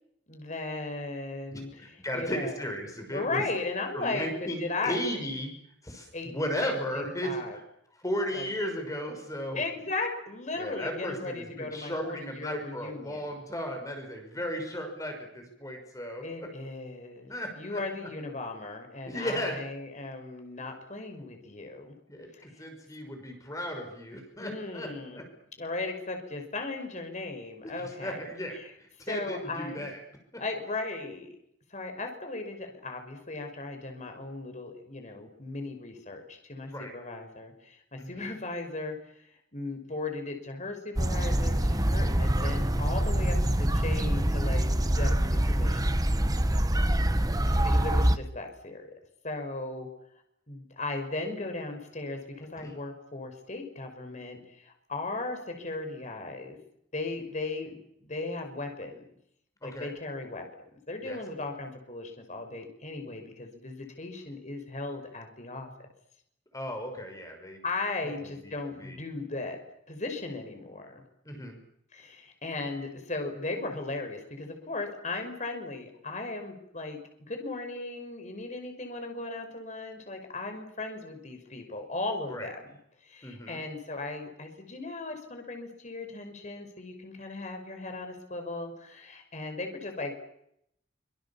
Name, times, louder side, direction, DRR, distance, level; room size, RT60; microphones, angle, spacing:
voice 1, 0.3-2.6 3.1-5.0 6.1-7.6 8.3-8.5 9.5-13.4 16.2-21.9 22.4-22.6 24.4-25.2 25.6-28.2 28.6-28.7 29.1-29.9 30.4-31.3 31.7-39.3 39.5-46.1 47.6-48.9 49.2-49.9 50.5-56.6 56.9-59.0 59.6-60.5 60.9-65.7 67.6-69.6 69.9-71.0 71.9-82.7 83.0-90.1, left 3 dB, 40° left, 5 dB, 5.9 m, -37 dB
voice 2, 1.5-3.4 3.9-5.5 5.8-7.4 7.9-9.6 10.6-16.5 17.3-17.8 19.0-19.6 22.1-25.2 27.6-30.0 30.3-30.4 36.7-36.9 38.0-38.3 47.5-47.8 52.5-52.7 59.6-59.9 61.0-61.2 66.5-67.6 68.0-68.5 68.8-69.0 71.2-71.6 82.3-82.5 83.2-83.6, equal, 20° left, 4 dB, 5.9 m, -35 dB
sound 1, 41.0-48.2, right 1 dB, 20° right, 1.3 m, -25 dB
26.0 x 25.5 x 7.3 m, 0.75 s
head